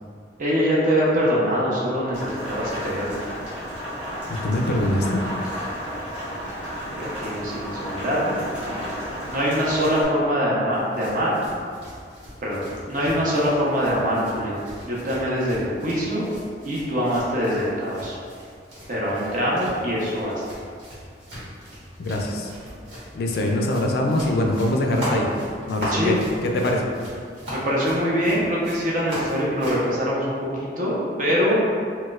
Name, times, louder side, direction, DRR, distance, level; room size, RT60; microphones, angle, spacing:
voice 1, 0.4-3.2 6.9-8.4 8.7-11.4 12.4-16.3 16.6-18.2 18.9-20.4 25.9-26.2 27.5-31.7, equal, 45° right, -6 dB, 0.7 m, -24 dB
Rain, 2.1-10.0, equal, 5° right, 0.8 m, -32 dB
voice 2, 4.3-5.2 22.0-22.5 23.1-25.3 25.7-26.9, left 1 dB, 55° left, 1 dB, 0.3 m, -23 dB
sound 1, 10.7-29.9, equal, 70° right, 1.3 m, -38 dB
4.1 x 2.1 x 2.3 m, 2.2 s
head